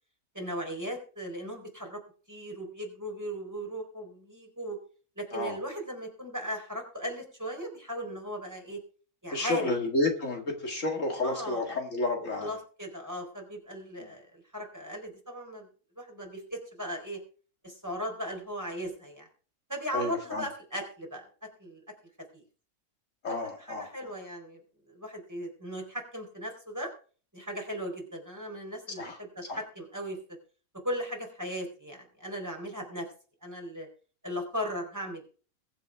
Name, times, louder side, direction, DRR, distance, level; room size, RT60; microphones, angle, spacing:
voice 1, 0.3-2.0 2.3-4.8 5.2-8.8 9.2-9.7 11.2-11.8 12.2-15.7 16.0-17.2 17.6-19.3 19.7-21.2 21.6-21.8 22.3-22.4 23.6-24.6 24.9-26.9 27.3-30.2 30.8-33.1 33.4-33.9 34.2-35.3, equal, 10° right, 1 dB, 4.1 m, -37 dB
voice 2, 9.3-12.5 19.9-20.5 23.2-23.9 29.0-29.6, left 2 dB, 60° left, 2 dB, 2.4 m, -31 dB
22.5 x 7.7 x 3.5 m, 0.40 s
omnidirectional pair, 1.5 m